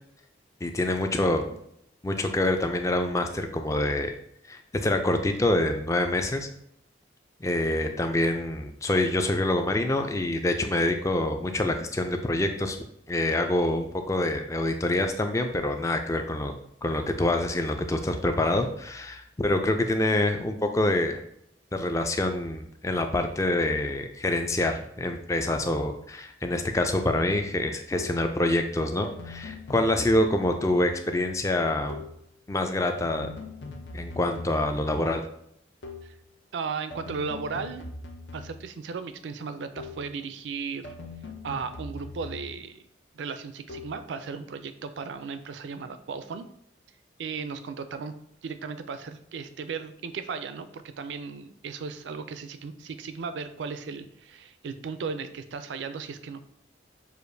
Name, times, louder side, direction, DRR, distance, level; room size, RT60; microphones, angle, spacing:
voice 1, 0.6-1.5 2.0-4.1 4.5-6.5 7.4-12.8 13.1-16.5 16.8-21.2 21.7-32.0 32.5-33.3 33.9-35.2, left 1 dB, 15° left, 5 dB, 0.3 m, -26 dB
sound 1, 28.0-28.4 29.0-31.0 31.9-32.3 33.0-34.9 35.8-36.2 36.9-38.8 39.8-40.2 40.8-42.8 43.7-44.1, left 3 dB, 75° left, 0.6 m, -42 dB
voice 2, 36.5-37.8 38.3-41.0 41.4-42.8 43.1-46.5 47.2-48.1 48.4-56.4, right 5 dB, 75° right, 10 dB, 0.4 m, -36 dB
6.4 x 2.5 x 2.6 m, 0.74 s
head